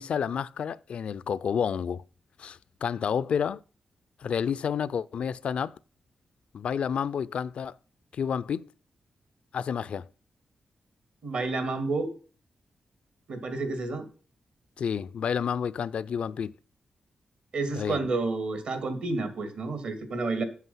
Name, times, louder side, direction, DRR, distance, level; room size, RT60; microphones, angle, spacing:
voice 1, 0.0-2.0 2.4-3.6 4.2-5.7 6.5-7.7 8.1-8.7 9.5-10.1 14.8-16.5 17.7-18.0, left 7 dB, 70° left, 0.4 m, -30 dB
voice 2, 11.2-12.1 13.3-14.1 17.5-20.4, right 3 dB, 75° right, 2.3 m, -30 dB
8.2 x 7.6 x 5.6 m
wide cardioid pair, 105°, 2 cm